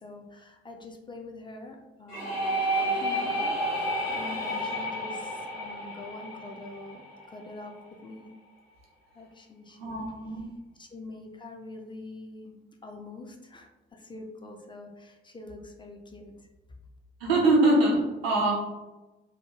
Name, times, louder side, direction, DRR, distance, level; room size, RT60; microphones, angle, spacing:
voice 1, 0.0-7.7 8.0-8.3 9.1-10.1 10.7-16.5, left 2 dB, 15° left, 1 dB, 0.4 m, -44 dB
sound 1, 2.1-7.7, right 1 dB, 75° left, 0.8 m, -31 dB
voice 2, 9.8-10.4 17.2-18.5, right 2 dB, 85° right, -2 dB, 0.6 m, -23 dB
2.6 x 2.1 x 2.8 m, 1.1 s
figure-of-eight pair, 40°, 29 cm